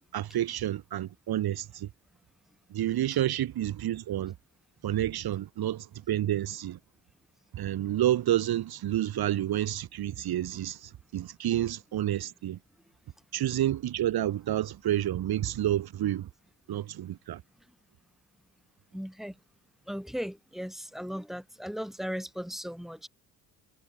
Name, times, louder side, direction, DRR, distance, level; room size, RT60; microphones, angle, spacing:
voice 1, 0.1-1.9 2.7-4.3 4.8-6.8 7.5-12.6 13.3-16.3 16.7-17.4, right 12 dB, 65° right, 2.0 m, -29 dB
voice 2, 18.9-19.4 19.9-23.1, equal, ahead, 6.8 m, -37 dB
cardioid pair, 110°, 40 cm